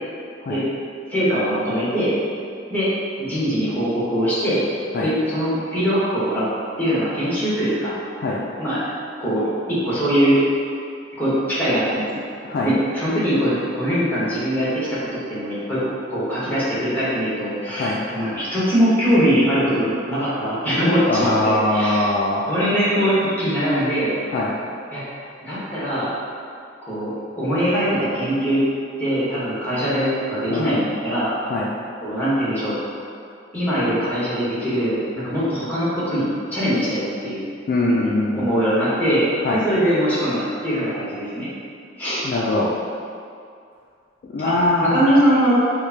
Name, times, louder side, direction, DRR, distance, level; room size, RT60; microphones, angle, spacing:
voice 1, 1.1-2.1 2.7-2.9 3.2-4.6 5.0-6.5 6.8-7.9 8.6-8.8 9.2-9.4 9.7-10.4 11.2-12.1 12.6-14.9 15.3-22.1 22.5-24.1 24.9-26.1 26.8-28.6 29.0-31.3 32.0-32.7 33.5-37.5 37.8-38.1 38.3-39.2 39.5-41.5 42.0-42.2 44.8-45.5, equal, 10° left, -10 dB, 1.1 m, -22 dB
voice 2, 12.4-12.7 17.7-18.0 21.1-22.5 24.3-24.5 30.5-30.7 31.5-31.7 37.7-38.5 39.4-39.6 42.2-42.7 44.2-45.1, left 2 dB, 50° left, -4 dB, 0.3 m, -22 dB
4.7 x 2.1 x 2.7 m, 2.3 s
head